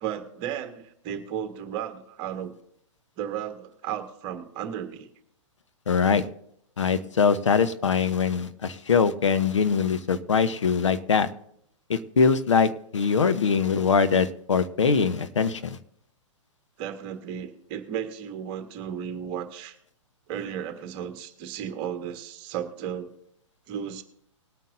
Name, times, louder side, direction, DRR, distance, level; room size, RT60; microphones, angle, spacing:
voice 1, 0.0-2.5 3.2-5.1 16.8-19.8 20.3-23.1 23.7-24.0, right 9 dB, 30° right, 8 dB, 1.3 m, -34 dB
voice 2, 5.9-6.2 6.8-11.3 11.9-15.8, left 5 dB, 65° left, 11 dB, 0.9 m, -22 dB
20.0 x 9.1 x 2.6 m, 0.73 s
figure-of-eight pair, 115°, 16 cm